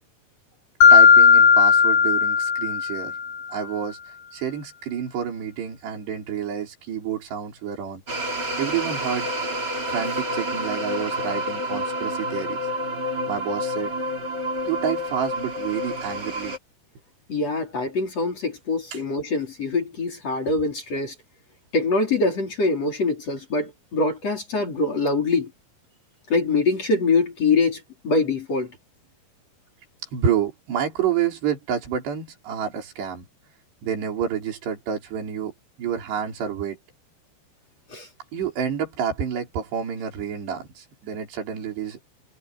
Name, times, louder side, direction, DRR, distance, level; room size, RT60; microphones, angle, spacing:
Mallet percussion, 0.8-3.4, left 6 dB, 75° left, 4.3 m, -15 dB
voice 1, 0.9-3.2 3.5-8.0 8.6-9.3 9.9-12.6 13.3-13.9 14.7-16.6 18.9-19.0 30.1-33.3 33.8-35.5 35.8-36.8 38.3-42.0, right 8 dB, 70° right, 7.0 m, -28 dB
sound 1, 8.1-16.6, equal, 25° right, 3.3 m, -29 dB
voice 2, 17.3-21.1 21.7-25.5 26.3-28.7 37.9-38.1, left 3 dB, 35° left, 5.2 m, -24 dB
omnidirectional pair, 5.1 m